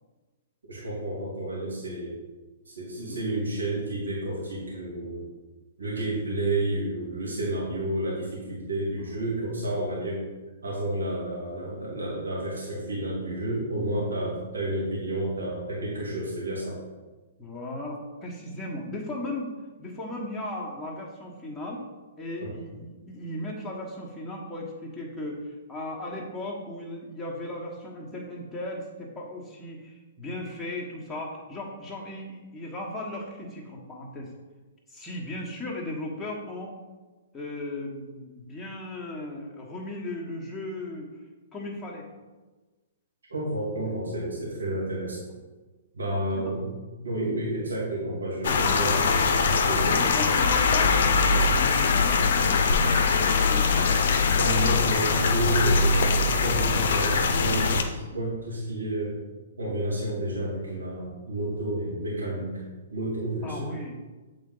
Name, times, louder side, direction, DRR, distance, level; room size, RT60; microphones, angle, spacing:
voice 1, 0.7-2.2 2.7-5.3 5.8-10.2 10.6-16.8 22.4-22.5 43.3-45.2 45.9-46.8 47.0-50.0 54.3-56.0 56.3-59.1 59.6-62.6 62.9-63.7, right 1 dB, 85° right, -6 dB, 2.2 m, -30 dB
voice 2, 17.4-19.5 19.8-21.8 22.2-34.3 34.9-36.7 37.3-41.1 41.5-42.1 46.3-46.5 49.9-51.5 51.9-53.9 58.1-58.2 63.4-64.0, left 1 dB, 10° left, -4 dB, 1.5 m, -36 dB
sound 1, 48.4-57.8, left 4 dB, 60° left, 0.7 m, -22 dB
7.8 x 3.9 x 3.9 m, 1.2 s
hypercardioid pair, 120°, 0 cm